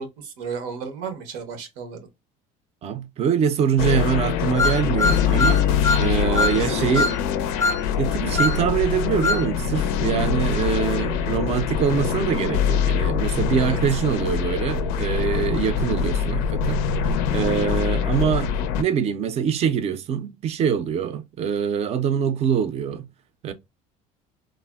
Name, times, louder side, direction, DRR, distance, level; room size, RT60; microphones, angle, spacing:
voice 1, 0.0-2.0 5.7-5.8 6.2-7.1 13.5-13.8, right 6 dB, 85° right, 0.8 m, -33 dB
voice 2, 2.8-5.7 6.0-7.1 8.0-16.8 17.3-23.1 23.4-23.5, right 7 dB, 40° right, 0.5 m, -24 dB
sound 1, 3.8-18.8, left 7 dB, 85° left, 0.4 m, -24 dB
sound 2, 4.6-6.1 6.4-6.6 7.0-7.2 7.6-7.8 8.4-8.6 9.2-9.5, left 3 dB, 20° left, 0.4 m, -22 dB
3.2 x 2.1 x 2.2 m
cardioid pair, 120°, 17 cm